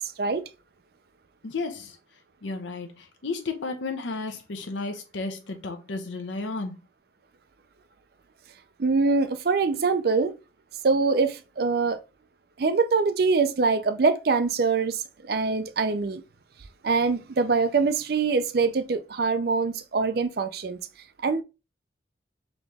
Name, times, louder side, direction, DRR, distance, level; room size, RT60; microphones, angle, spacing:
voice 1, 1.4-2.0 2.4-6.7, left 3 dB, 75° left, 0.7 m, -33 dB
voice 2, 8.8-10.4 10.8-12.0 12.6-16.2 16.8-20.8 21.2-21.4, right 4 dB, 55° right, 0.4 m, -24 dB
4.1 x 3.0 x 3.4 m
head